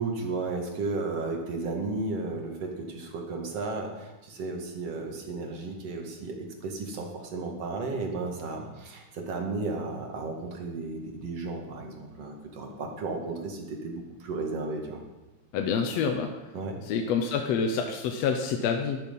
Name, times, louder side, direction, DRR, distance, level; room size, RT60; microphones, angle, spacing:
voice 1, 0.0-15.0 16.5-16.8, right 3 dB, 55° right, 2 dB, 2.8 m, -34 dB
voice 2, 15.5-16.3 16.9-19.0, left 6 dB, 70° left, 4 dB, 1.8 m, -27 dB
12.0 x 11.5 x 5.4 m, 1.1 s
omnidirectional pair, 3.4 m